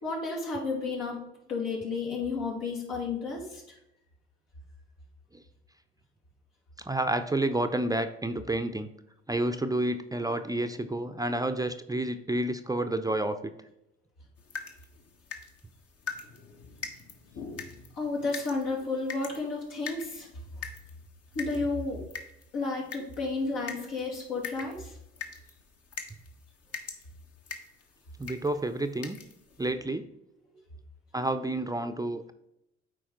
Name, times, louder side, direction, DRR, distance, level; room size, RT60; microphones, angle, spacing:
voice 1, 0.0-1.2 1.5-3.6 18.0-20.3 21.3-22.0 22.5-25.0, left 3 dB, 75° left, -4 dB, 2.7 m, -32 dB
voice 2, 6.8-8.9 9.3-13.5 28.2-29.2 29.6-30.0 31.1-32.3, right 1 dB, 10° right, 8 dB, 0.6 m, -30 dB
sound 1, 14.4-29.7, left 5 dB, 50° left, 1.4 m, -44 dB
8.4 x 4.7 x 3.9 m, 0.83 s
hypercardioid pair, 50°, 31 cm